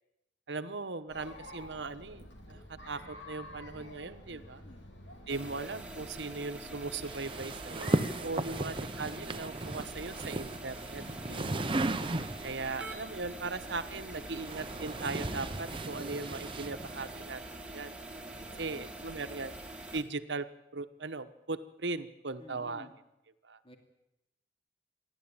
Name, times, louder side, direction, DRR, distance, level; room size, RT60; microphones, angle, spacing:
voice 1, 0.5-4.6 5.3-11.6 12.4-17.4 17.7-18.0 18.6-19.6 19.9-20.5 20.7-22.9 23.4-23.6, right 3 dB, 75° right, 10 dB, 1.1 m, -39 dB
Chatter, 1.1-15.8, left 1 dB, 85° left, 3.5 m, -51 dB
voice 2, 4.3-4.9 11.3-11.9 18.3-19.5 22.4-22.9 23.6-23.8, left 1 dB, 30° left, 4 dB, 2.5 m, -53 dB
sound 1, 5.3-20.0, right 2 dB, 5° right, 2.0 m, -45 dB
sound 2, 7.0-12.7 13.7-17.3, right 2 dB, 30° right, 0.8 m, -36 dB
28.0 x 12.0 x 8.9 m, 0.90 s
head